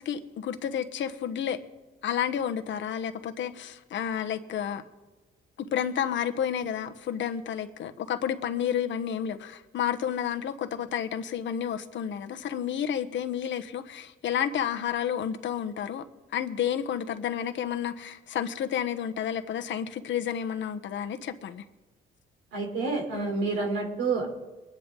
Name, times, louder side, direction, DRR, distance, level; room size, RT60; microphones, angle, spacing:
voice 1, 0.0-1.6 2.0-4.8 5.7-16.1 16.3-21.6, left 9 dB, 70° left, 7 dB, 1.3 m, -31 dB
voice 2, 22.5-24.3, right 3 dB, 90° right, 1 dB, 4.0 m, -28 dB
23.5 x 10.5 x 4.0 m, 1.2 s
cardioid pair, 90°, 20 cm